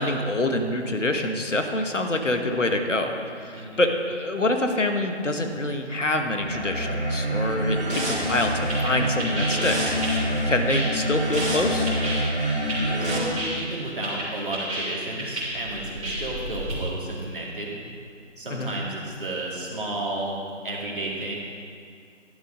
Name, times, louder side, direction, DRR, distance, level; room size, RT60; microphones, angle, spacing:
voice 1, 0.0-10.0 10.5-11.9 18.5-18.7, left 2 dB, 80° left, 5 dB, 1.4 m, -26 dB
voice 2, 3.5-3.8 13.0-17.8 18.4-21.3, right 2 dB, 45° right, -3 dB, 2.4 m, -32 dB
sound 1, 6.4-13.2, equal, 65° right, 3.1 m, -26 dB
sound 2, 8.3-16.8, right 1 dB, 30° right, 3.2 m, -33 dB
12.0 x 7.6 x 5.1 m, 2.3 s
figure-of-eight pair, 160°, 37 cm